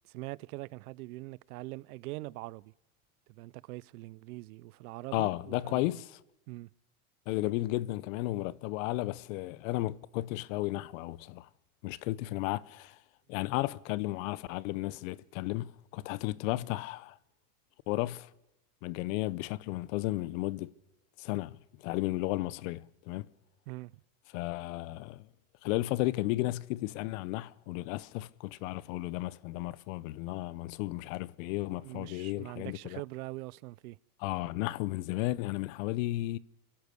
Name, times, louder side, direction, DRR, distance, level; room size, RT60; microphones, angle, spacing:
voice 1, 0.0-2.7 3.3-6.0 6.5-6.7 16.6-16.7 23.7-23.9 31.8-34.0, right 21 dB, 80° right, 0.6 m, -43 dB
voice 2, 5.1-6.1 7.3-11.5 11.8-13.0 13.3-17.2 17.9-18.3 18.8-20.7 21.2-23.3 24.3-25.3 25.6-33.0 34.2-36.4, left 18 dB, 60° left, 0.7 m, -34 dB
27.5 x 12.0 x 8.2 m
supercardioid pair, 135°, 44 cm